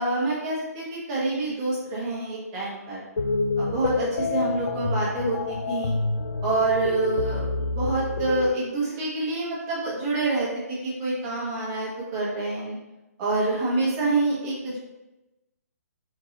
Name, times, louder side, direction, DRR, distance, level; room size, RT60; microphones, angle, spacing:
voice 1, 0.0-3.0 3.6-5.9 6.4-12.8 13.2-14.8, right 2 dB, 15° right, -6 dB, 0.8 m, -27 dB
sound 1, 3.2-8.5, left 3 dB, 80° left, 0.4 m, -27 dB
3.7 x 2.8 x 2.8 m, 1.0 s
hypercardioid pair, 170°, 9 cm